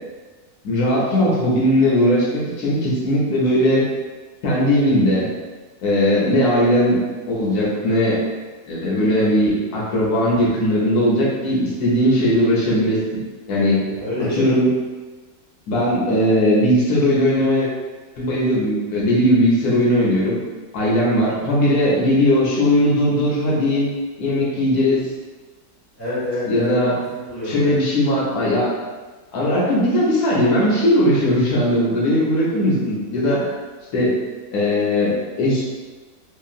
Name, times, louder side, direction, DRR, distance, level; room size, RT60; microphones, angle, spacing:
voice 1, 0.6-3.8 4.4-5.3 5.8-7.0 7.3-8.2 8.7-13.2 13.5-13.8 14.3-14.7 15.7-17.7 18.2-20.4 20.7-23.9 24.2-25.1 26.5-26.9 27.5-28.7 29.3-33.5 33.9-34.1 34.5-35.6, left 1 dB, 85° left, -6 dB, 1.3 m, -18 dB
voice 2, 13.9-14.5 21.4-21.5 26.0-27.8, left 1 dB, 35° left, -11 dB, 1.4 m, -28 dB
2.9 x 2.5 x 2.4 m, 1.3 s
omnidirectional pair, 1.6 m